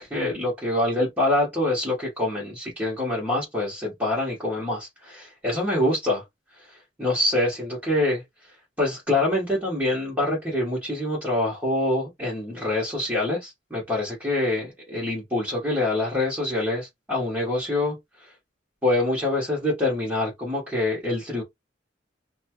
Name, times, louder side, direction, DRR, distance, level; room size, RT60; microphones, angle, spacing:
voice 1, 0.0-6.2 6.7-8.2 8.8-18.0 18.8-21.4, left 1 dB, 10° right, 1.2 m, -25 dB
2.8 x 2.2 x 2.9 m
head